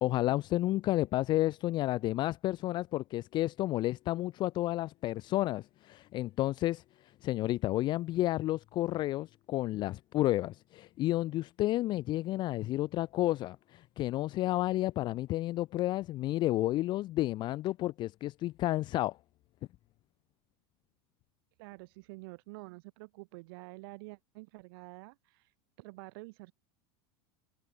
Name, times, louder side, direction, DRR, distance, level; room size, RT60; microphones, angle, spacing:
voice 1, 0.0-6.8 7.2-19.2, left 16 dB, 35° left, 0.5 m, -31 dB
voice 2, 21.6-26.5, right 25 dB, 65° right, 1.6 m, -48 dB
supercardioid pair, 140°, 13 cm